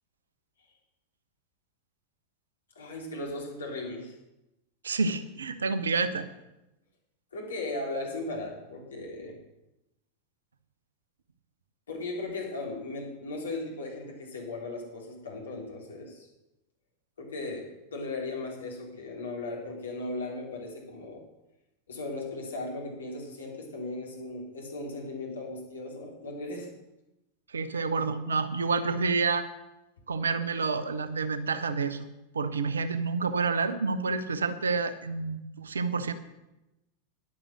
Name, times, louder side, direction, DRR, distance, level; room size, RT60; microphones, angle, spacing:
voice 1, 2.8-4.2 7.3-9.4 11.9-16.3 17.2-21.2 21.9-26.7, left 2 dB, 70° left, -1 dB, 3.4 m, -37 dB
voice 2, 4.8-6.3 27.5-29.5 30.1-32.1 32.3-36.1, right 4 dB, 70° right, 12 dB, 0.8 m, -29 dB
10.5 x 8.8 x 6.2 m, 0.97 s
figure-of-eight pair, 90°, 0 cm